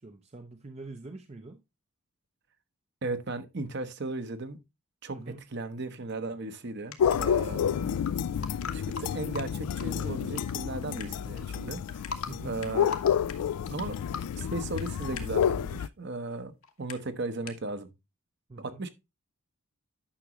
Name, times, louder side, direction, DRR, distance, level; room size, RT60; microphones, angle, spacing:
voice 1, 0.0-1.6 5.1-5.4 12.3-12.6 18.5-18.8, right 3 dB, 30° right, 0.6 m, -44 dB
voice 2, 3.0-4.6 5.0-5.2 5.5-8.3 8.7-12.0 12.4-13.0 13.7-13.9 14.4-16.5 16.8-17.9 18.6-18.9, right 2 dB, 50° right, 0.9 m, -36 dB
sound 1, 6.9-7.3 8.0-8.1 8.4-10.5 10.8-11.6 11.9-12.3 12.6-15.5 16.6-16.9 17.5-17.6, left 5 dB, 70° left, 1.2 m, -38 dB
sound 2, 7.0-15.9, left 8 dB, 90° left, 0.3 m, -30 dB
9.9 x 6.0 x 3.0 m
head